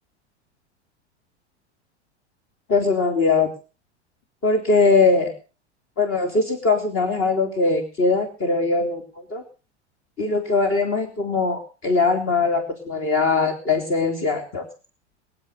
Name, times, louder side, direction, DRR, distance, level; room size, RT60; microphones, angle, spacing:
voice 1, 2.7-3.5 4.4-5.3 6.0-9.0 9.3-9.4 10.2-14.6, left 3 dB, 40° left, 5 dB, 3.6 m, -21 dB
23.5 x 8.0 x 6.7 m, 0.35 s
hypercardioid pair, 90°, 34 cm